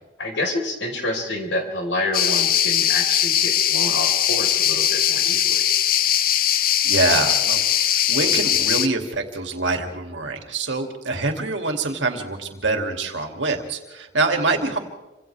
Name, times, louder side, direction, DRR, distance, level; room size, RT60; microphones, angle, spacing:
voice 1, 0.2-5.6, left 1 dB, 75° left, 2 dB, 4.8 m, -28 dB
sound 1, 2.1-8.9, left 10 dB, 50° left, 0.7 m, -20 dB
voice 2, 6.8-14.8, right 3 dB, 85° right, 3 dB, 2.9 m, -25 dB
29.0 x 26.0 x 3.6 m, 1.1 s
head